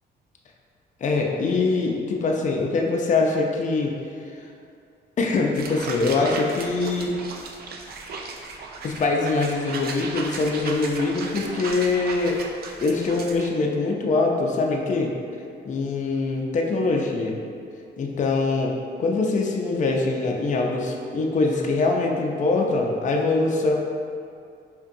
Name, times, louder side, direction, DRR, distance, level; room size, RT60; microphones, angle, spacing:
voice 1, 1.0-4.0 5.2-7.2 8.8-12.4 12.8-15.1 15.6-17.4 18.0-23.7, left 3 dB, 40° left, 1 dB, 0.5 m, -23 dB
sound 1, 5.5-13.5, right 3 dB, 50° right, 0.4 m, -36 dB
5.2 x 2.2 x 2.6 m, 2.4 s
cardioid pair, 90°, 20 cm